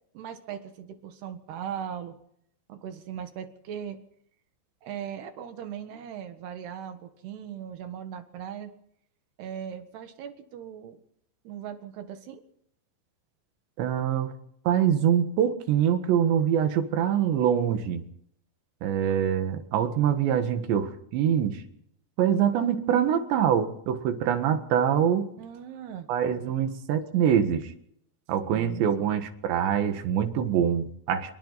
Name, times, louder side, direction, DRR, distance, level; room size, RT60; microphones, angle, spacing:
voice 1, 0.2-2.2 2.7-4.0 4.8-8.7 9.4-11.0 11.5-12.4 25.4-26.1 28.5-29.1, right 9 dB, 75° right, 8 dB, 3.6 m, -39 dB
voice 2, 13.8-14.3 14.7-18.0 18.8-21.6 22.2-25.3 26.1-27.7 28.3-31.4, right 9 dB, 90° right, 8 dB, 4.0 m, -24 dB
27.0 x 23.5 x 4.2 m, 0.70 s
omnidirectional pair, 4.9 m